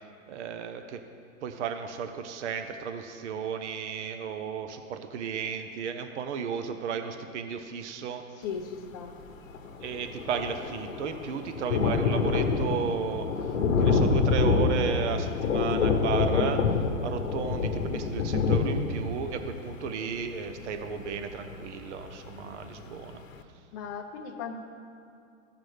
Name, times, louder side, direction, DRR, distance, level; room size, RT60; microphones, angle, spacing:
voice 1, 0.3-1.0 1.4-8.5 9.8-16.7 17.0-23.2, right 7 dB, 60° right, 7 dB, 0.8 m, -34 dB
voice 2, 8.4-9.2 23.7-24.6, left 6 dB, 15° left, 1 dB, 0.3 m, -37 dB
Thunder, 9.2-9.3 9.5-22.2 22.6-22.7 23.1-23.2, left 4 dB, 85° left, 1.0 m, -27 dB
15.5 x 6.0 x 3.3 m, 2.6 s
hypercardioid pair, 145°, 39 cm